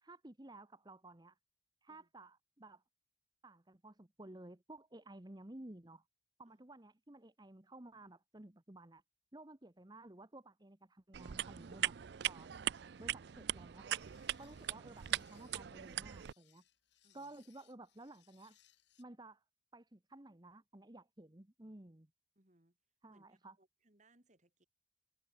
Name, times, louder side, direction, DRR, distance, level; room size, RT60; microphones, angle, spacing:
voice 1, 0.0-1.4 1.8-2.8 3.4-6.0 6.4-9.0 9.3-12.0 12.2-12.5 13.0-14.1 14.4-16.6 17.1-18.6 19.0-19.4 19.7-22.1 23.0-23.6, right 2 dB, 20° right, 1.0 m, -55 dB
sound 1, 11.1-16.3, right 11 dB, 55° right, 0.4 m, -40 dB
sound 2, 14.0-19.0, left 13 dB, 60° left, 3.2 m, -72 dB
voice 2, 17.0-17.3 22.3-22.8 23.1-24.7, right 2 dB, 35° right, 2.8 m, -71 dB
head